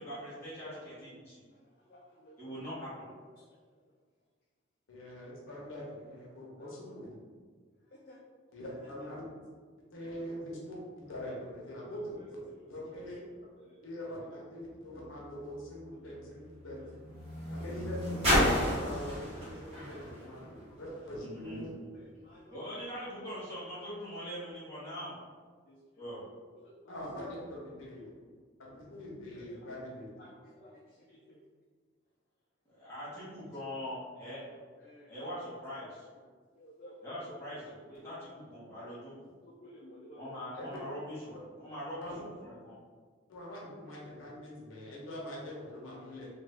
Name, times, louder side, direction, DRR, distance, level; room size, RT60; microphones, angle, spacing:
voice 1, 0.0-1.4 2.4-3.1 21.2-21.7 22.5-25.2 26.0-26.2 32.7-34.4 35.1-36.1 37.0-39.3 40.2-42.8, equal, 10° left, -11 dB, 1.1 m, -42 dB
voice 2, 0.6-1.0 1.6-2.4 3.3-3.6 6.6-7.1 7.9-8.2 10.1-10.3 11.7-12.0 12.9-13.0 13.4-13.8 15.9-16.2 16.6-16.9 17.2-17.6 19.6-20.1 20.7-20.8 21.9-22.8 25.7-25.8 26.6-26.9 29.2-29.8 30.2-31.4 34.4-35.4 36.6-37.7 38.0-38.1 39.4-40.3, equal, 45° left, -3 dB, 0.3 m, -55 dB
voice 3, 4.9-7.1 8.5-9.2 9.9-12.4 12.7-13.3 13.8-16.8 17.5-21.7 26.9-28.1 28.6-30.1 40.5-40.7 42.0-42.2 43.3-46.3, equal, 85° left, -4 dB, 0.8 m, -43 dB
sound 1, 14.7-21.2 22.0-22.1, equal, 30° right, 1.3 m, -33 dB
2.6 x 2.5 x 3.3 m, 1.6 s
head